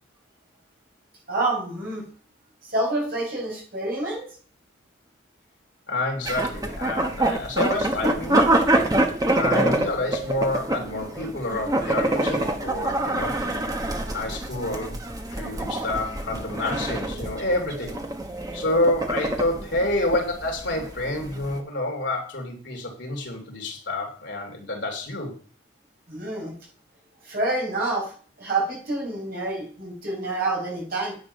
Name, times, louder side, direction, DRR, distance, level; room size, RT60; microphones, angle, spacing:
voice 1, 1.3-2.0 2.7-4.3 26.1-26.5 27.3-28.1 28.4-31.2, right 2 dB, 45° right, -1 dB, 5.6 m, -27 dB
voice 2, 5.9-8.6 9.3-13.4 14.1-15.0 15.3-18.0 18.5-25.3, left 1 dB, 60° left, 1 dB, 3.0 m, -28 dB
sound 1, 6.2-21.6, right 1 dB, 20° right, 1.1 m, -26 dB
10.0 x 8.9 x 5.4 m, 0.43 s
head